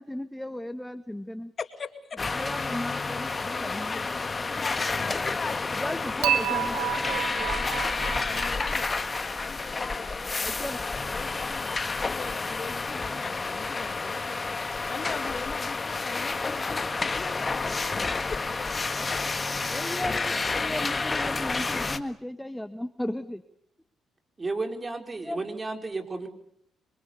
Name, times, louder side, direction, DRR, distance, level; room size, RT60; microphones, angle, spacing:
voice 1, 0.0-1.5 2.3-4.1 5.7-6.8 10.4-10.8 19.6-23.4 25.1-25.4, left 1 dB, 5° left, 10 dB, 1.4 m, -35 dB
voice 2, 1.6-2.0 3.3-8.9 9.4-18.9, left 5 dB, 50° left, 9 dB, 2.4 m, -41 dB
sound 1, 2.2-22.0, left 3 dB, 35° left, 1.8 m, -30 dB
Dishes pots and pans / Chink clink, 6.2-9.4, right 10 dB, 80° right, 2.0 m, -30 dB
voice 3, 24.4-26.3, right 3 dB, 30° right, 5 dB, 4.6 m, -33 dB
26.0 x 24.0 x 7.0 m, 0.71 s
supercardioid pair, 55°, 0 cm